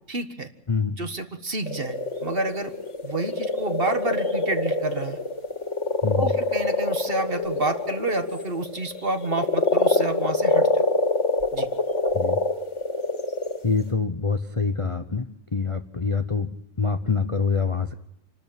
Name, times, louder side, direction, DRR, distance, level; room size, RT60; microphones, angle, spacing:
voice 1, 0.1-0.5 1.0-2.0 2.2-2.7 3.0-5.2 6.1-10.8 11.5-11.7, right 2 dB, 35° right, 8 dB, 1.6 m, -29 dB
sound 1, 1.7-13.8, left 2 dB, 45° left, 2.8 m, -25 dB
voice 2, 13.6-15.3 15.5-16.5 16.8-17.9, left 5 dB, 25° left, 8 dB, 0.7 m, -25 dB
28.0 x 13.0 x 8.9 m, 0.76 s
omnidirectional pair, 1.8 m